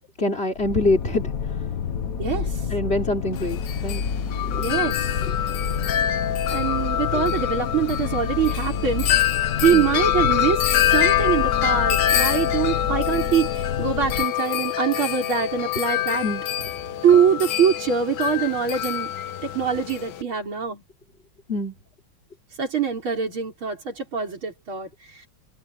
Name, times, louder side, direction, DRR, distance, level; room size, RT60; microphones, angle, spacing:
voice 1, 0.2-1.7 2.7-4.0 9.7-9.9 16.2-16.4 21.5-21.8, left 2 dB, 30° left, 3.7 m, -25 dB
sound 1, 0.6-14.2, left 6 dB, 50° left, 1.6 m, -29 dB
voice 2, 2.2-2.7 4.6-5.2 6.5-9.3 9.6-16.2 17.0-19.1 19.4-20.8 22.6-25.3, right 7 dB, 85° right, 5.5 m, -24 dB
Wind chime, 3.4-20.2, left 11 dB, 65° left, 1.5 m, -25 dB
open air
omnidirectional pair, 2.2 m